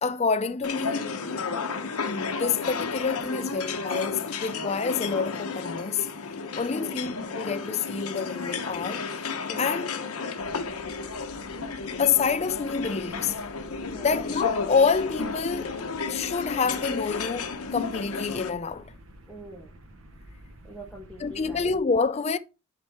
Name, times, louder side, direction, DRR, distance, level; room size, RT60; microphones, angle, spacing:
voice 1, 0.0-1.1 2.1-6.1 6.6-9.1 9.6-9.9 12.0-13.4 14.0-15.8 16.1-18.9 21.2-22.4, left 5 dB, 30° left, 0.4 m, -27 dB
sound 1, 0.6-18.5, left 4 dB, 85° left, 1.0 m, -32 dB
voice 2, 6.4-7.0 9.5-9.7 13.9-14.2 19.3-19.7 20.6-21.7, right 1 dB, 5° left, 1.3 m, -43 dB
sound 2, 10.4-21.8, right 1 dB, 70° right, 1.2 m, -50 dB
10.0 x 4.5 x 3.5 m
head